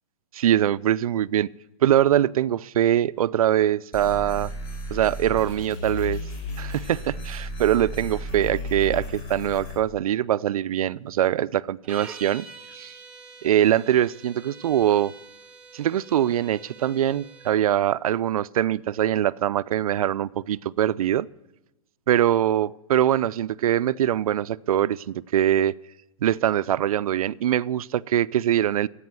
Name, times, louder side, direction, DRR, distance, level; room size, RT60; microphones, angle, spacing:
voice 1, 0.3-1.5 1.8-4.5 4.9-6.2 6.6-12.5 12.7-13.0 13.4-15.1 15.7-21.3 22.1-25.7 26.2-28.9, right 11 dB, 75° right, 0.4 m, -23 dB
sound 1, 3.9-9.8, left 1 dB, 40° left, 5.4 m, -34 dB
sound 2, 11.8-17.6, right 5 dB, 5° right, 0.9 m, -45 dB
14.0 x 8.5 x 9.5 m
hypercardioid pair, 165°, 19 cm